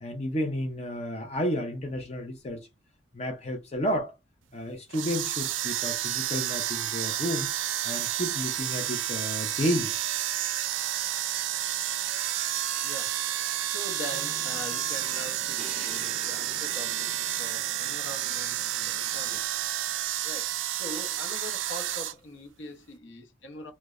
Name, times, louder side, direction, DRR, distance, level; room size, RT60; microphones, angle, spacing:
voice 1, 0.0-2.7 3.1-4.1 4.5-7.5 7.8-9.9, equal, 35° left, 0.5 m, -31 dB
sound 1, 4.9-22.1, right 12 dB, 90° right, 0.3 m, -30 dB
voice 2, 12.8-17.1 17.4-19.6 20.2-23.7, left 1 dB, 80° left, 0.7 m, -42 dB
Traffic noise roadway noise, 14.1-19.5, equal, ahead, 1.1 m, -52 dB
Crash cymbal, 15.6-19.4, right 3 dB, 30° right, 0.6 m, -49 dB
2.9 x 2.1 x 2.3 m
head